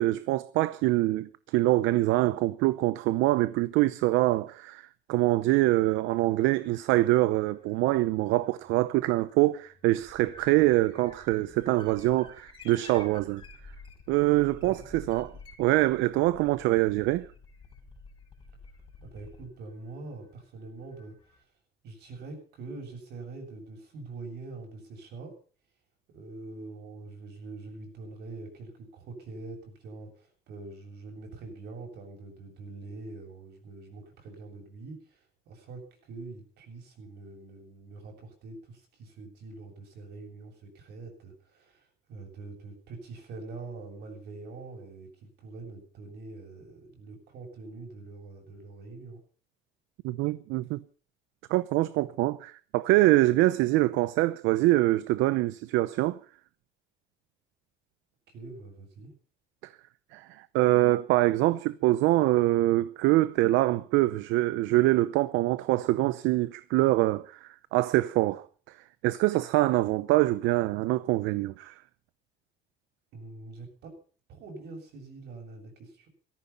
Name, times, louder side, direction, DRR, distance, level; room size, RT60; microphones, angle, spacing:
voice 1, 0.0-13.4 14.1-15.3 15.6-17.3 50.0-50.8 51.5-56.2 60.1-68.4 69.0-71.8, right 18 dB, 80° right, 0.7 m, -24 dB
sound 1, 6.0-21.4, left 3 dB, 25° left, 5.7 m, -52 dB
voice 2, 19.0-21.4 21.8-25.4 26.1-49.2 58.3-59.1 73.1-74.0 74.3-76.1, right 3 dB, 60° right, 7.5 m, -44 dB
17.0 x 14.0 x 5.7 m
cardioid pair, 165°, 19 cm